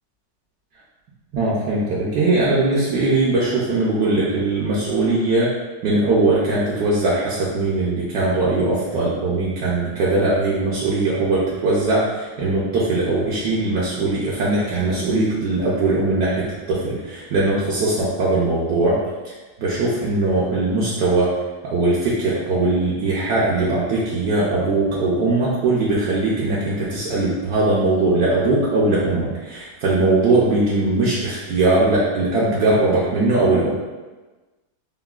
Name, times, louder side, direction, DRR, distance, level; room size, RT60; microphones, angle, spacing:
voice 1, 1.3-5.5 5.8-18.9 19.6-21.3 21.7-33.7, right 2 dB, 70° right, -8 dB, 1.1 m, -20 dB
3.9 x 2.1 x 2.3 m, 1.2 s
omnidirectional pair, 1.9 m